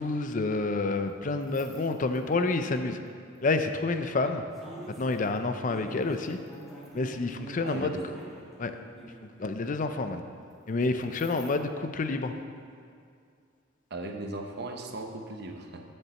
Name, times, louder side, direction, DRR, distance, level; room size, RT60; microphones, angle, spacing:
voice 1, 0.0-3.0 3.4-4.4 5.0-6.4 6.9-8.0 8.6-8.7 9.4-10.2 10.7-12.3, left 3 dB, 40° left, 8 dB, 0.5 m, -28 dB
sound 1, 1.4-2.7 3.5-3.8 4.5-9.3 10.8-11.5, right 1 dB, ahead, 2.0 m, -46 dB
voice 2, 7.6-8.1 13.9-15.8, right 2 dB, 60° right, 3 dB, 0.9 m, -37 dB
7.2 x 6.7 x 7.5 m, 2.3 s
head